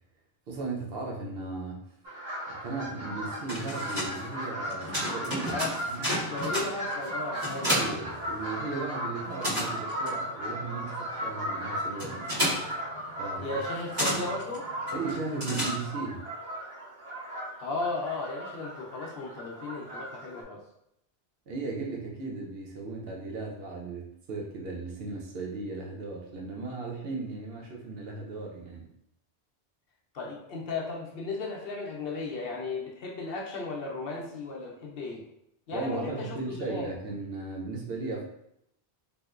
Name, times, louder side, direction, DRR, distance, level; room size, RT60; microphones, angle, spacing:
voice 1, 0.5-1.8 2.5-5.6 5.9-6.0 7.6-12.2 13.2-13.6 14.9-16.2 21.5-28.9 35.7-38.2, right 3 dB, 70° right, -1 dB, 0.9 m, -36 dB
sound 1, 2.0-20.4, equal, 85° right, 1.4 m, -37 dB
sound 2, 3.2-8.8 9.1-16.2, equal, 45° right, 1.3 m, -33 dB
voice 2, 6.2-7.9 13.4-14.7 17.6-20.6 30.1-35.2 35.7-36.9, left 3 dB, 65° left, -1 dB, 0.8 m, -35 dB
3.5 x 2.7 x 2.4 m, 0.79 s
omnidirectional pair, 1.1 m